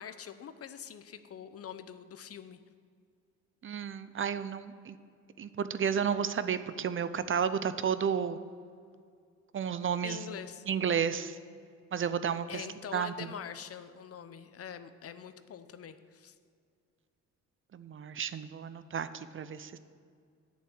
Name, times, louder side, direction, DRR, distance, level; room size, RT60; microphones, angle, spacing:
voice 1, 0.0-2.6 10.0-10.6 12.5-16.3, left 8 dB, 50° left, 12 dB, 0.8 m, -44 dB
voice 2, 3.6-5.0 5.4-8.4 9.5-10.2 10.7-11.4 11.9-12.6 12.9-13.3 17.7-19.8, right 7 dB, 40° right, 13 dB, 0.6 m, -32 dB
8.6 x 7.2 x 8.8 m, 2.2 s
cardioid pair, 90°, 30 cm